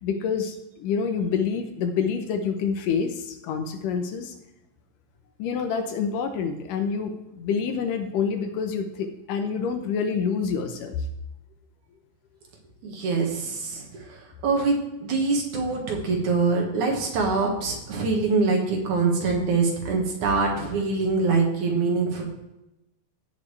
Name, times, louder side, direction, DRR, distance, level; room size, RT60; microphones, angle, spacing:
voice 1, 0.0-4.3 5.4-11.1, left 6 dB, 75° left, 6 dB, 2.4 m, -27 dB
voice 2, 12.8-22.2, right 4 dB, 60° right, 0 dB, 2.9 m, -24 dB
17.0 x 6.5 x 3.3 m, 0.91 s
omnidirectional pair, 4.0 m